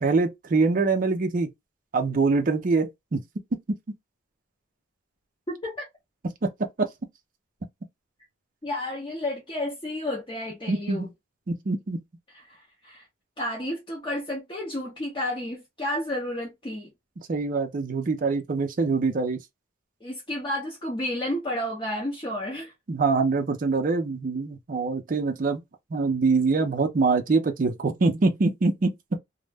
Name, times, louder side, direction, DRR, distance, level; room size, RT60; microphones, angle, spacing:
voice 1, 0.0-1.5 1.9-3.2 3.7-3.8 6.4-6.5 6.8-6.9 10.7-11.1 11.5-12.0 17.3-19.4 22.9-25.6 25.9-28.9, right 3 dB, 40° right, 0.4 m, -24 dB
voice 2, 5.5-5.9 8.6-11.1 12.3-13.1 13.4-16.9 20.0-22.7, left 1 dB, 25° left, 0.6 m, -31 dB
2.0 x 2.0 x 3.3 m
head